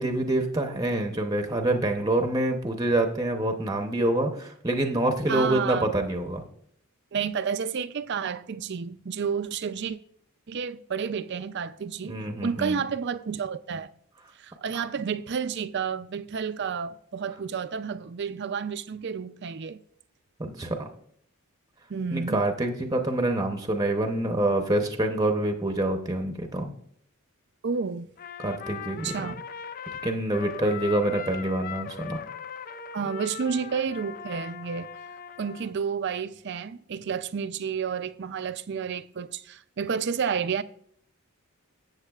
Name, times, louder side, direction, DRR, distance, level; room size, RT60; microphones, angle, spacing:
voice 1, 0.0-6.4 12.0-12.8 14.7-14.8 20.4-20.8 22.1-26.7 28.4-29.3 30.0-32.2, right 1 dB, 15° right, 0.7 m, -26 dB
voice 2, 5.3-5.9 7.1-10.0 10.5-13.9 14.4-19.8 21.9-22.4 27.6-28.1 29.0-29.4 32.9-34.9 35.4-40.6, right 6 dB, 50° right, 0.4 m, -30 dB
Trumpet, 28.2-35.7, left 8 dB, 40° left, 0.4 m, -39 dB
13.0 x 8.2 x 2.4 m
head